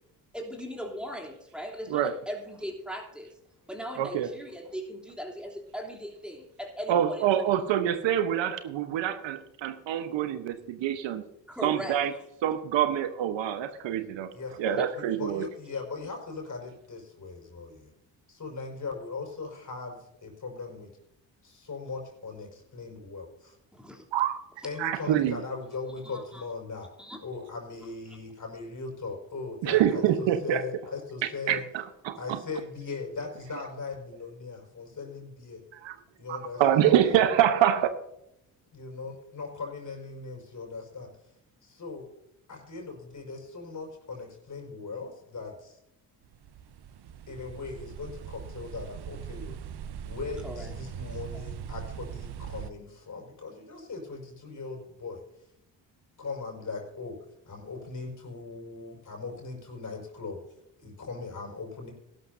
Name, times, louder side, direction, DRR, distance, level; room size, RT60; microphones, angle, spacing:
voice 1, 0.3-3.3 3.7-7.2 11.5-12.0 14.8-14.9 23.7-24.0 26.0-26.4 27.0-27.2 50.4-50.7 51.3-51.4, equal, ahead, -1 dB, 3.2 m, -39 dB
voice 2, 1.9-2.2 4.0-4.3 6.9-11.2 11.6-12.1 12.4-14.3 14.6-15.5 24.1-24.4 24.8-25.4 29.6-30.7 31.2-32.4 35.7-36.0 36.3-37.9, right 10 dB, 75° right, 10 dB, 1.1 m, -26 dB
voice 3, 14.3-17.9 18.3-20.9 21.4-23.6 24.6-26.9 27.2-31.6 32.2-35.6 36.2-36.9 38.7-41.1 41.6-42.1 42.5-45.8 47.3-49.6 50.0-55.2 56.2-57.2 57.5-60.4 60.8-61.9, left 4 dB, 40° left, 1 dB, 5.5 m, -39 dB
sound 1, 46.2-52.7, right 8 dB, 55° right, 0.9 m, -40 dB
16.0 x 12.0 x 2.7 m, 0.82 s
supercardioid pair, 55°, 45 cm